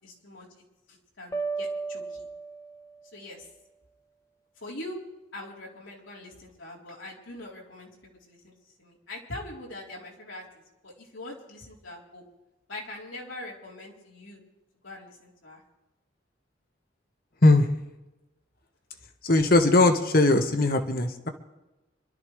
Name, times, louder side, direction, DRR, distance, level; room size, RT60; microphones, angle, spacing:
voice 1, 0.0-0.5 0.9-2.3 3.1-3.5 4.6-5.0 5.3-8.5 8.8-10.4 10.8-12.2 12.7-14.4 14.8-15.6, left 1 dB, 85° left, -3 dB, 3.8 m, -42 dB
sound 1, 1.3-3.2, right 4 dB, 15° left, 1.0 m, -34 dB
voice 2, 19.2-21.3, left 2 dB, 50° left, 6 dB, 1.4 m, -20 dB
26.5 x 13.0 x 3.3 m, 1.0 s
head